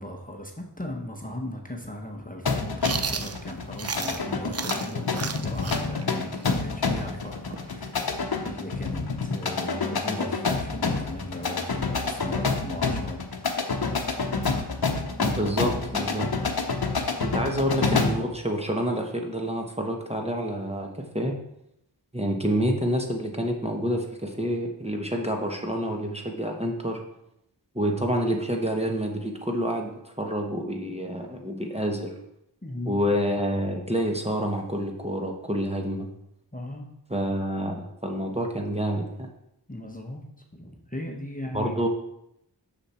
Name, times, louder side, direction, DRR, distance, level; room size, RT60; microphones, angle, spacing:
voice 1, 0.0-7.9 8.4-13.2 16.6-16.9 32.6-33.0 36.5-36.9 39.7-40.3 40.5-41.7, left 1 dB, 20° left, 2 dB, 1.0 m, -37 dB
sound 1, 2.5-18.3, left 4 dB, 60° left, 0.9 m, -28 dB
Chewing mastication, 2.8-4.2 4.5-8.1, right 6 dB, 40° right, 0.4 m, -33 dB
voice 2, 15.2-16.3 17.2-21.3 22.1-27.0 27.7-32.1 32.9-36.1 37.1-39.3 41.5-41.9, equal, 15° right, 1 dB, 1.1 m, -28 dB
6.4 x 6.1 x 4.2 m, 0.79 s
wide cardioid pair, 55°, 41 cm